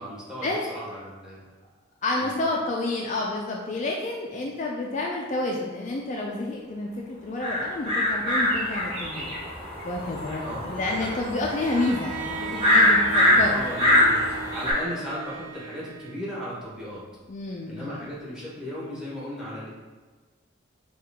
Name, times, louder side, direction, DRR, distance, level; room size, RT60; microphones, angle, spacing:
voice 1, 0.0-1.4 2.2-2.4 10.4-11.8 13.2-17.0 17.7-19.7, equal, 5° right, -8 dB, 1.2 m, -37 dB
voice 2, 2.0-9.3 9.8-13.6 17.3-18.0, left 2 dB, 40° left, -1 dB, 0.3 m, -29 dB
sound 1, 7.4-14.7, left 1 dB, 30° right, 1.5 m, -23 dB
Bowed string instrument, 11.4-16.5, right 4 dB, 70° right, 0.4 m, -38 dB
4.6 x 2.4 x 3.4 m, 1.3 s
head